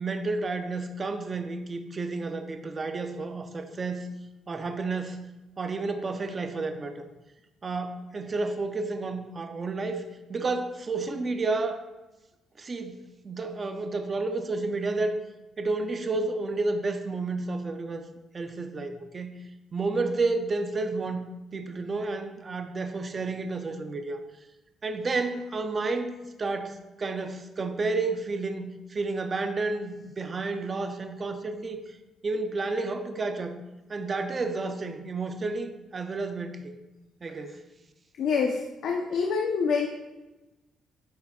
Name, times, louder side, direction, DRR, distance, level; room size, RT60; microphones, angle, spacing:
voice 1, 0.0-4.1 4.5-5.2 5.6-7.0 7.6-10.0 10.3-11.9 12.6-15.2 15.6-18.0 18.3-19.4 19.7-24.2 24.8-26.1 26.4-32.0 32.2-33.6 33.9-36.7 37.2-37.6, right 3 dB, 25° right, 6 dB, 0.6 m, -31 dB
voice 2, 38.2-39.9, left 5 dB, 70° left, 1 dB, 0.8 m, -26 dB
9.2 x 7.1 x 2.4 m, 1.0 s
cardioid pair, 160°, 0 cm